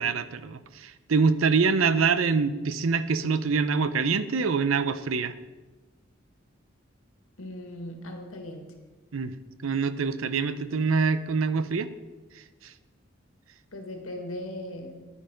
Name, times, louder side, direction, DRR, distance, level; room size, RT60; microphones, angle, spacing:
voice 1, 0.0-5.4 9.1-9.3 9.6-11.9 12.3-12.7, right 5 dB, 80° right, 13 dB, 0.6 m, -25 dB
voice 2, 7.4-8.7 13.7-15.1, left 1 dB, 90° left, 4 dB, 1.7 m, -38 dB
9.9 x 9.8 x 5.1 m, 1.2 s
head